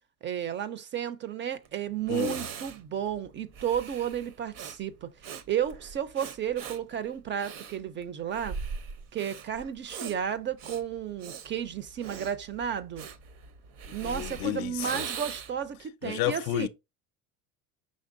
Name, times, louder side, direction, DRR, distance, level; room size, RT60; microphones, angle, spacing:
voice 1, 0.2-5.1 5.5-8.6 9.1-13.0 13.9-16.7, right 9 dB, 30° right, 0.5 m, -32 dB
Breathing, 1.6-1.7 2.1-15.7, right 6 dB, 55° right, 0.8 m, -41 dB
voice 2, 2.1-2.4 14.0-15.0 16.0-16.7, left 16 dB, 60° left, 0.5 m, -31 dB
5.3 x 3.3 x 2.5 m
supercardioid pair, 105°, 40 cm